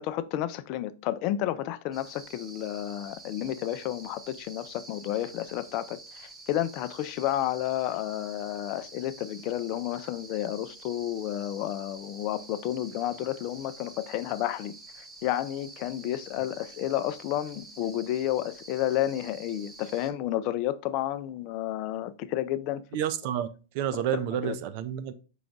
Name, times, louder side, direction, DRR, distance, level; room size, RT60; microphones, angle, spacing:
voice 1, 0.0-22.8 24.4-24.5, left 13 dB, 45° left, 0.3 m, -31 dB
sound 1, 1.9-20.1, right 2 dB, 15° right, 1.0 m, -48 dB
voice 2, 22.9-23.5 23.7-25.1, right 10 dB, 50° right, 0.4 m, -29 dB
4.9 x 2.3 x 3.8 m
hypercardioid pair, 110°, 0 cm